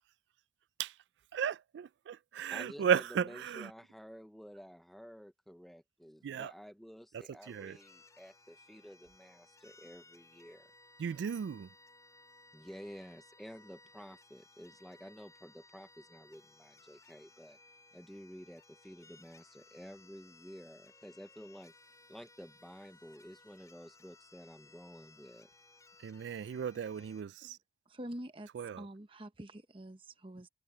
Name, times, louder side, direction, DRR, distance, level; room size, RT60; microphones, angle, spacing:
voice 1, 1.3-3.7 6.2-6.5 7.3-7.8 11.0-11.7 26.0-27.6 28.5-28.9, right 7 dB, 85° right, 0.3 m, -35 dB
voice 2, 2.5-10.7 12.5-17.6 17.9-25.5, equal, ahead, 0.7 m, -52 dB
sound 1, 7.4-27.2, left 3 dB, 20° left, 4.6 m, -61 dB
voice 3, 27.9-28.5 28.8-30.5, right 1 dB, 30° right, 1.0 m, -46 dB
head